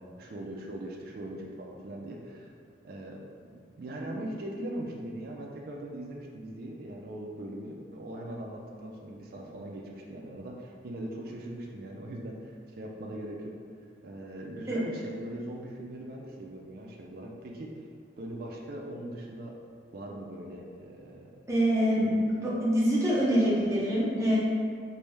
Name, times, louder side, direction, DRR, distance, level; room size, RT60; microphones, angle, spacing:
voice 1, 0.0-2.5 2.8-3.2 3.5-13.5 14.0-17.7 18.2-19.5 19.9-21.4, right 1 dB, 50° right, -1 dB, 0.4 m, -40 dB
voice 2, 21.5-24.4, equal, 15° right, -7 dB, 0.7 m, -25 dB
3.2 x 2.6 x 3.3 m, 2.2 s
head